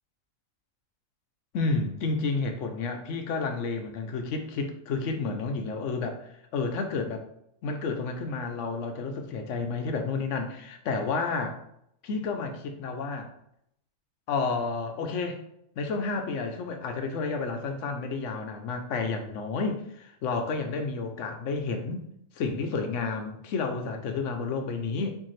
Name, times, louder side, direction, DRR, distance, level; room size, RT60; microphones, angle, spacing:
voice 1, 1.5-7.2 7.6-11.6 12.0-13.3 14.3-15.4 15.8-22.1 22.3-25.2, left 4 dB, 70° left, 5 dB, 1.0 m, -31 dB
4.5 x 3.4 x 3.2 m, 0.74 s
omnidirectional pair, 1.4 m